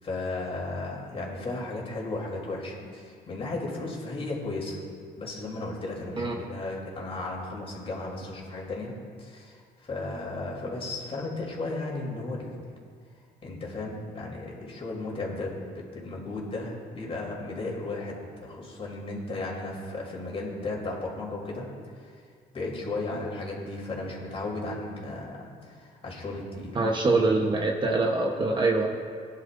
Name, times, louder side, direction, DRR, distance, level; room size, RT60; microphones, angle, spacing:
voice 1, 0.0-4.8 5.2-8.9 9.2-12.6 13.4-21.6 22.0-22.1 22.5-26.8, left 2 dB, 35° left, -2 dB, 3.3 m, -35 dB
voice 2, 26.7-28.9, right 3 dB, 25° right, 0 dB, 1.0 m, -24 dB
19.0 x 11.0 x 2.6 m, 2.1 s
cardioid pair, 110°, 17 cm